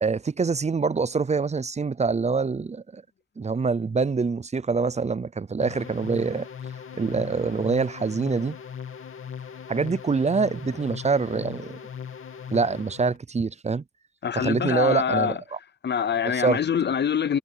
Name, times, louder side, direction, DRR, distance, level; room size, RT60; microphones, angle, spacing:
voice 1, 0.0-3.0 3.4-6.5 6.9-8.6 9.7-11.8 12.5-13.8 14.3-15.4 16.2-16.6, right 4 dB, 35° right, 0.6 m, -25 dB
sound 1, 5.6-13.2, left 7 dB, 90° left, 2.7 m, -39 dB
voice 2, 14.2-15.4 15.8-17.4, left 7 dB, 55° left, 0.6 m, -25 dB
wide cardioid pair, 95°, 21 cm